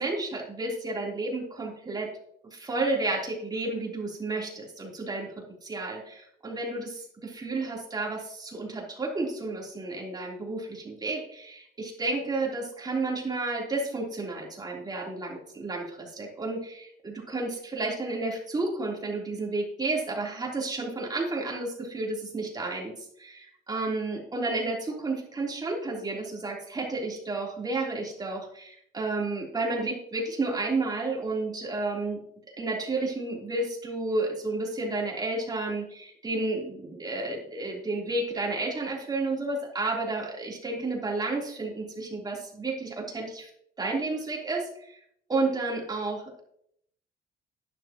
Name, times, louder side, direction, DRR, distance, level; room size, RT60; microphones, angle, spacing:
voice 1, 0.0-2.1 2.5-5.3 5.6-22.9 23.2-32.2 32.6-43.5 43.8-45.0 45.3-46.4, right 2 dB, 25° right, -2 dB, 3.6 m, -31 dB
11.5 x 10.5 x 3.0 m, 0.71 s
cardioid pair, 110°, 17 cm